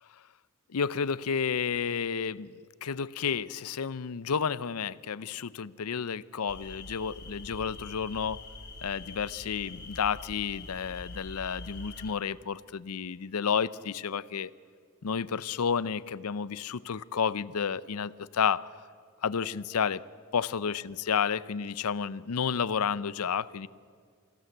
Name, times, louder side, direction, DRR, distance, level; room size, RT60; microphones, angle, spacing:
voice 1, 0.7-2.5 2.8-8.4 8.8-14.5 15.0-18.7 19.2-20.1 20.3-23.7, left 6 dB, 80° left, 18 dB, 0.6 m, -31 dB
sound 1, 6.5-12.1, left 2 dB, 45° left, 2.8 m, -45 dB
26.5 x 15.5 x 7.9 m, 2.1 s
head